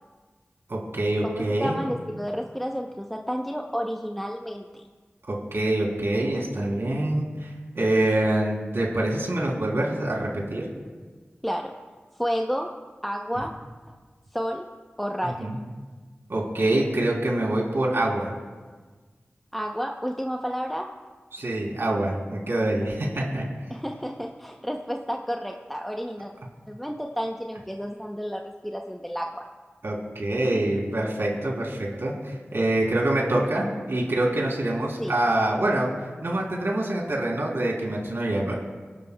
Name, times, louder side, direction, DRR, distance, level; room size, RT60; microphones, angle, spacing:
voice 1, 0.7-1.8 5.3-10.7 15.2-15.6 16.3-18.3 21.3-23.4 29.8-35.9 36.2-38.6, right 1 dB, 75° right, -2 dB, 3.2 m, -25 dB
voice 2, 1.2-4.9 11.4-11.7 12.2-12.7 13.0-13.5 14.3-14.7 15.0-15.5 19.5-20.9 23.7-26.3 26.7-29.4 35.0-35.1, equal, 5° left, 2 dB, 0.7 m, -31 dB
25.0 x 12.0 x 2.3 m, 1.4 s
wide cardioid pair, 50°, 4 cm